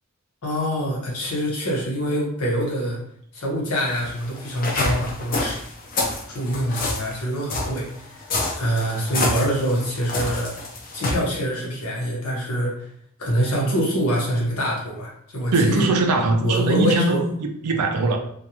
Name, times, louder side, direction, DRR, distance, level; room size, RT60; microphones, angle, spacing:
voice 1, 0.4-3.0 3.3-5.6 6.3-8.2 8.5-10.5 10.9-12.9 13.2-15.9 16.4-17.2, equal, 75° left, 0.9 m, -25 dB
sound 1, 3.9-11.1, left 2 dB, 40° left, 0.5 m, -27 dB
voice 2, 15.5-18.2, right 2 dB, 85° right, 0.4 m, -21 dB
2.4 x 2.2 x 2.8 m
head